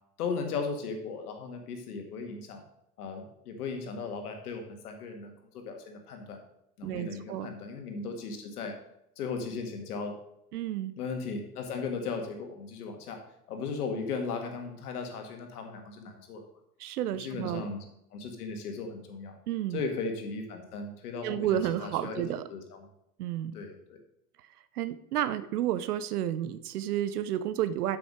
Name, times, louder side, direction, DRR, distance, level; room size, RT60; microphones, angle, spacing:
voice 1, 0.2-2.6 3.0-6.4 6.8-8.7 9.2-10.2 11.0-13.2 13.5-16.5 17.2-17.8 18.1-19.3 19.7-22.2 22.5-22.8 23.5-24.0, left 4 dB, 75° left, 4 dB, 2.0 m, -36 dB
voice 2, 6.8-7.5 10.5-10.9 16.8-17.7 19.5-19.8 21.2-22.5 23.2-23.6 24.7-28.0, right 11 dB, 75° right, 14 dB, 0.7 m, -31 dB
8.0 x 6.0 x 5.0 m, 0.77 s
hypercardioid pair, 90°, 46 cm